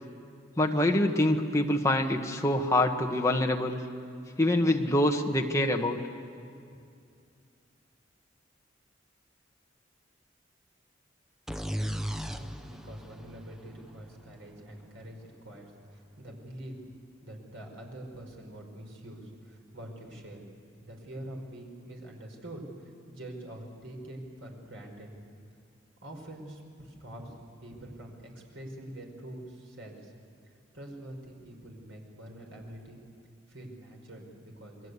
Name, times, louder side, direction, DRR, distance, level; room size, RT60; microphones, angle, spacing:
voice 1, 0.6-3.8 4.4-6.0, left 1 dB, 15° left, 2 dB, 1.4 m, -25 dB
sound 1, 11.5-15.2, equal, ahead, 0.6 m, -37 dB
voice 2, 11.9-16.9 17.2-20.4 20.8-25.1 26.0-30.1 30.7-33.0 33.5-34.9, right 1 dB, 85° right, 1 dB, 5.0 m, -45 dB
28.0 x 21.0 x 8.3 m, 2.4 s
head